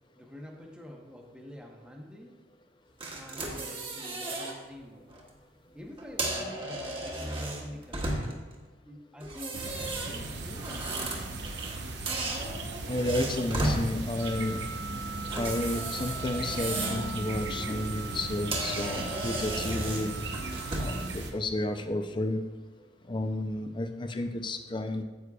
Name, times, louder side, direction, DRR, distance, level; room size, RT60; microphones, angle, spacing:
voice 1, 0.1-2.4 3.1-5.1 5.7-8.4 8.8-11.2, left 1 dB, 5° right, 0 dB, 0.8 m, -47 dB
sound 1, 3.0-4.5 5.0-5.2 6.0-8.5 9.2-11.8 12.1-13.8 15.3-17.1 17.5-17.7 18.2-18.3 18.5-21.0, right 2 dB, 30° right, 1.1 m, -34 dB
sound 2, 9.5-21.3, right 2 dB, 65° right, 0.8 m, -37 dB
voice 2, 12.9-14.6 15.4-20.1 20.8-22.4 23.1-25.0, left 1 dB, 25° left, 7 dB, 0.5 m, -31 dB
Wind instrument woodwind instrument, 14.2-21.1, right 4 dB, 85° right, 0.5 m, -42 dB
9.4 x 8.2 x 2.4 m, 1.3 s
head